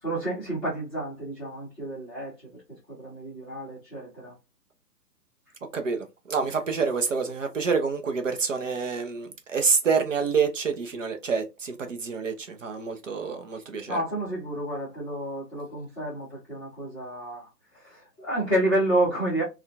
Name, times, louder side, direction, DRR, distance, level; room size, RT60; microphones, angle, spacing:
voice 1, 0.0-2.3 2.9-4.3 13.9-17.5 17.7-19.4, right 1 dB, ahead, 0.6 m, -29 dB
voice 2, 5.7-14.0, right 5 dB, 50° right, 0.6 m, -27 dB
3.6 x 2.2 x 2.2 m
figure-of-eight pair, 135°, 49 cm